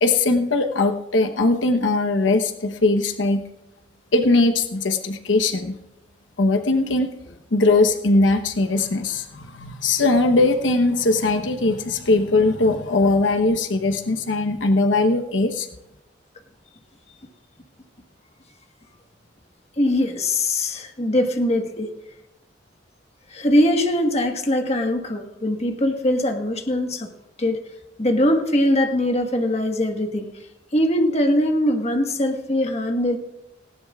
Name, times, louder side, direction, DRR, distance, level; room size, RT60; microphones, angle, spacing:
voice 1, 0.0-3.4 4.1-5.8 6.4-15.7, left 2 dB, 80° left, 7 dB, 1.0 m, -20 dB
voice 2, 19.8-21.9 23.3-27.1 27.4-27.6 28.0-30.3 30.7-33.2, left 1 dB, 35° left, 4 dB, 1.4 m, -21 dB
18.5 x 16.5 x 2.4 m, 0.91 s
head